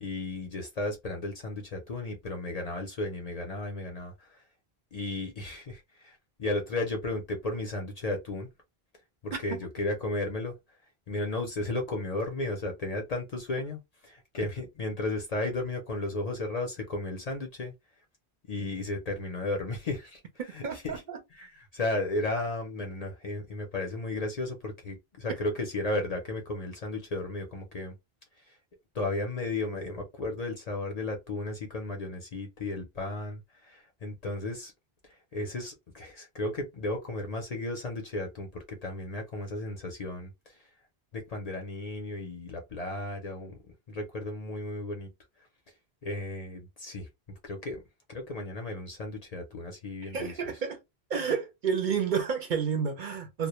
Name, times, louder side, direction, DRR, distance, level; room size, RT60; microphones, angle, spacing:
voice 1, 0.0-4.4 4.9-8.5 9.2-10.5 11.1-17.7 18.4-20.2 20.5-21.0 21.3-27.9 28.5-28.6 28.9-34.7 35.0-40.6 41.1-43.6 43.9-45.1 46.0-47.1 47.4-47.8 48.1-50.3, left 2 dB, 50° left, 0.6 m, -34 dB
voice 2, 20.6-21.2 50.1-50.8 51.1-53.5, right 6 dB, 55° right, 0.6 m, -30 dB
2.1 x 2.1 x 2.9 m
omnidirectional pair, 1.0 m